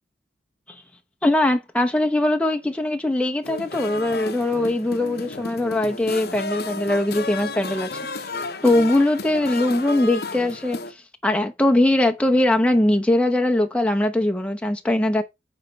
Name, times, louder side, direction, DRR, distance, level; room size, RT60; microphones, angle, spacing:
voice 1, 1.2-7.9 8.6-10.8 11.2-15.2, left 1 dB, 5° left, 0.8 m, -21 dB
sound 1, 3.4-10.9, left 3 dB, 55° left, 0.8 m, -32 dB
9.3 x 3.3 x 5.6 m
head